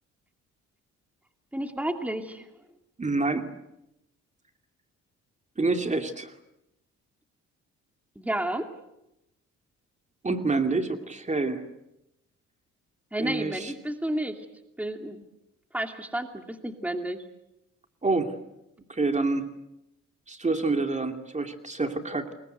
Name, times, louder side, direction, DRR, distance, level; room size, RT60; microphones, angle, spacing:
voice 1, 1.5-2.5 8.2-8.7 13.1-14.4 14.8-15.2 15.7-17.2, right 1 dB, 5° right, 6 dB, 2.5 m, -31 dB
voice 2, 3.0-3.4 5.6-6.3 10.2-11.6 13.2-13.7 18.0-18.3 18.9-19.5 20.3-22.3, right 3 dB, 25° right, 6 dB, 2.5 m, -27 dB
28.5 x 22.0 x 8.1 m, 0.88 s
cardioid pair, 90°, 30 cm